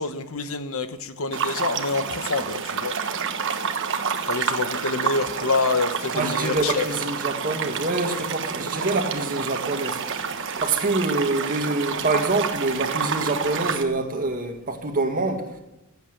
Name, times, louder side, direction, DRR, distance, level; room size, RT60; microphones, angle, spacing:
voice 1, 0.0-3.0 4.2-6.9, left 3 dB, 70° left, 1.3 m, -27 dB
sound 1, 1.3-13.8, right 6 dB, 60° right, 1.3 m, -28 dB
voice 2, 6.1-10.0 10.6-15.5, right 2 dB, 40° right, 2.1 m, -26 dB
16.0 x 8.6 x 10.0 m
head